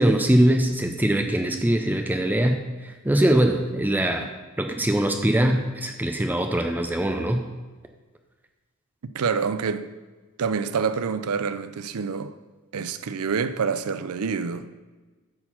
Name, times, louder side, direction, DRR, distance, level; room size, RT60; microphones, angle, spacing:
voice 1, 0.0-4.3 4.6-7.4, right 1 dB, 10° right, 0.5 m, -22 dB
voice 2, 9.1-9.9 10.4-12.3 12.7-14.8, right 5 dB, 80° right, 0.5 m, -27 dB
8.8 x 4.4 x 5.6 m
head